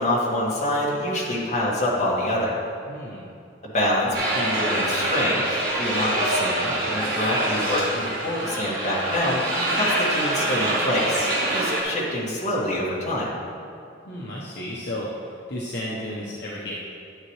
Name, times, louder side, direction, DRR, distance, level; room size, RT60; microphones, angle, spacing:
voice 1, 0.0-2.5 3.7-9.4 9.7-13.3, left 1 dB, 40° left, -5 dB, 2.0 m, -26 dB
voice 2, 2.9-3.2 14.0-16.7, left 1 dB, 60° left, -5 dB, 1.0 m, -33 dB
sound 1, 4.1-11.8, right 1 dB, 50° right, 2.3 m, -25 dB
11.0 x 8.9 x 3.2 m, 2.5 s
head